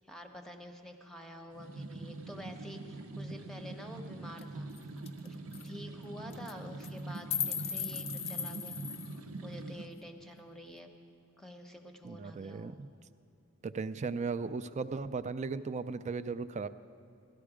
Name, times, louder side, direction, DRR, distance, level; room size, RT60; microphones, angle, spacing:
voice 1, 0.0-4.7 5.2-5.4 5.6-10.9 11.4-12.8, left 1 dB, ahead, 4 dB, 0.8 m, -48 dB
sound 1, 1.5-9.9, right 2 dB, 85° right, 0.8 m, -43 dB
sound 2, 4.4-4.5 4.8-4.9 5.1-5.3 5.5-5.7 6.3-6.5 6.8-9.2, left 8 dB, 30° left, 0.4 m, -37 dB
voice 2, 12.0-12.9 13.6-16.7, right 4 dB, 35° right, 13 dB, 0.4 m, -36 dB
17.0 x 13.0 x 4.9 m, 2.6 s
head